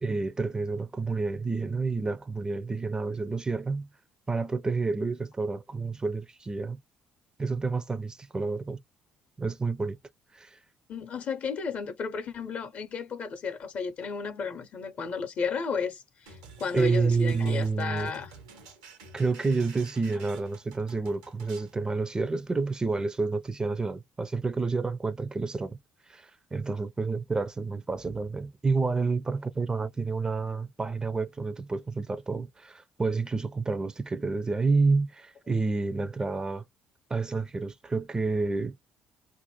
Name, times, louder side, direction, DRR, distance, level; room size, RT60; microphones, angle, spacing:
voice 1, 0.0-3.9 4.3-6.8 7.4-8.8 9.4-10.0 10.3-10.6 16.7-18.1 19.1-25.8 26.1-36.6 37.1-38.7, right 4 dB, 25° right, 0.4 m, -29 dB
voice 2, 10.9-18.3, left 5 dB, 55° left, 0.6 m, -33 dB
sound 1, 16.3-21.7, right 4 dB, 90° right, 0.8 m, -50 dB
2.5 x 2.1 x 2.9 m
hypercardioid pair, 55°, 3 cm